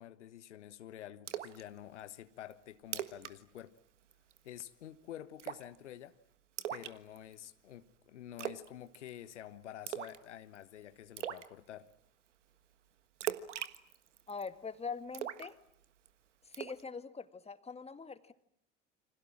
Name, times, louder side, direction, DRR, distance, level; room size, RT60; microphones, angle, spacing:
voice 1, 0.0-3.8 4.4-6.2 6.7-11.9, left 11 dB, 70° left, 1.3 m, -49 dB
Splash splatter, 1.3-1.6 2.0-2.1 2.5-2.6 2.8-3.3 3.6-3.8 4.1-4.5 5.4-5.8 6.6-7.5 8.4-8.7 8.9-9.3 9.9-10.2 10.6-10.7 11.2-11.5 13.2-14.5 15.1-16.1 16.5-16.8, right 10 dB, 75° right, 1.5 m, -40 dB
voice 2, 14.3-15.6 16.5-18.3, left 5 dB, 15° left, 2.0 m, -43 dB
29.5 x 26.0 x 7.5 m
figure-of-eight pair, 75°, 37 cm